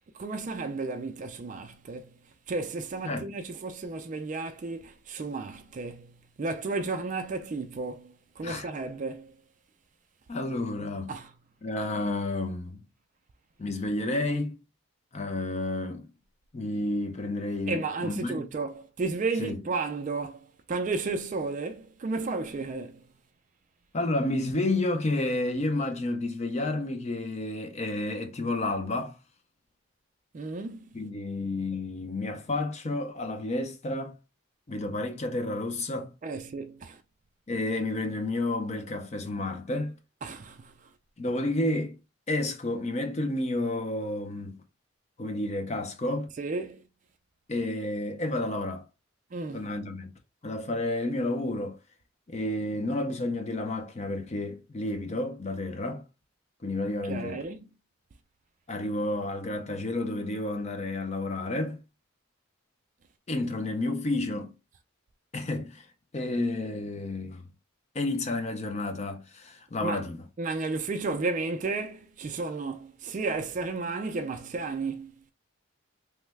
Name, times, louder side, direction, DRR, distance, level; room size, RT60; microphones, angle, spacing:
voice 1, 0.2-2.2 2.5-9.3 11.1-11.3 17.7-23.0 30.3-30.9 36.2-37.0 40.2-40.7 46.4-46.8 49.3-49.6 57.1-57.6 69.8-70.0 70.4-75.3, right 3 dB, 35° right, 0.3 m, -33 dB
voice 2, 10.3-11.1 11.6-12.8 13.6-14.6 15.1-16.1 16.5-18.5 19.4-19.6 23.9-29.2 30.9-34.2 34.7-36.1 37.5-40.0 41.2-42.0 42.3-44.6 45.2-46.3 47.5-48.9 49.5-50.1 50.4-51.8 52.3-56.0 56.6-57.4 58.7-61.8 63.3-64.5 65.3-65.9 66.1-67.4 67.9-70.2, left 2 dB, 30° left, 0.4 m, -30 dB
3.1 x 2.1 x 3.3 m
head